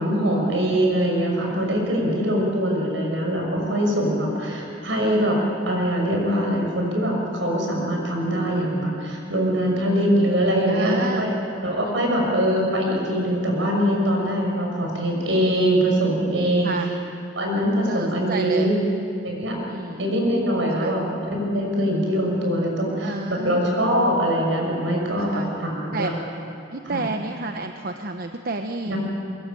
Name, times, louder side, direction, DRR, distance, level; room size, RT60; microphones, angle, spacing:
voice 1, 0.0-11.4 11.6-16.7 17.4-18.8 19.2-19.6 20.0-21.0 21.3-26.1 26.8-27.0 28.8-29.0, equal, 75° right, 0 dB, 6.4 m, -23 dB
voice 2, 10.7-11.3 12.1-12.2 16.6-16.9 17.9-18.7 19.7-20.0 20.8-20.9 23.0-23.7 25.2-25.5 25.9-26.1 26.7-28.9, right 3 dB, 55° right, 5 dB, 1.0 m, -30 dB
23.0 x 21.0 x 9.0 m, 2.6 s
head